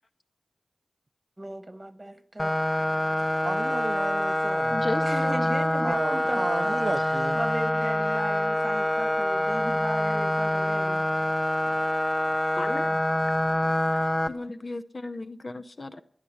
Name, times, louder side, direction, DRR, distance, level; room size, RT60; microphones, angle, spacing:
voice 1, 1.4-2.5 5.0-6.8 7.3-11.0, right 1 dB, 20° right, 1.3 m, -36 dB
sound 1, 2.4-14.3, left 1 dB, 30° left, 1.0 m, -26 dB
voice 2, 3.4-4.9 5.8-7.4, right 3 dB, 50° right, 0.4 m, -33 dB
voice 3, 4.7-5.6 12.6-13.0 14.3-16.0, left 2 dB, 55° left, 0.6 m, -34 dB
11.0 x 11.0 x 7.1 m
wide cardioid pair, 55°, 0 cm